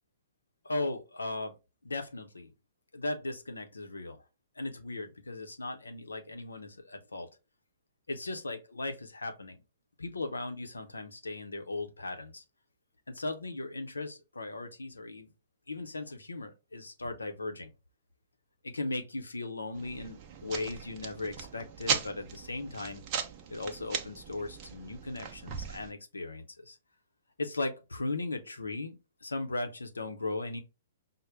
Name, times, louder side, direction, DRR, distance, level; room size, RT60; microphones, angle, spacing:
voice 1, 0.6-1.6 1.8-2.5 2.9-4.2 4.6-7.3 8.1-9.6 10.0-12.4 13.1-15.3 15.7-17.7 18.6-23.0 23.5-26.8 27.4-29.0 29.2-30.6, left 2 dB, 75° left, 0.7 m, -37 dB
sound 1, 19.7-25.9, right 7 dB, 35° right, 0.6 m, -38 dB
5.2 x 2.1 x 3.3 m
figure-of-eight pair, 110°, 0 cm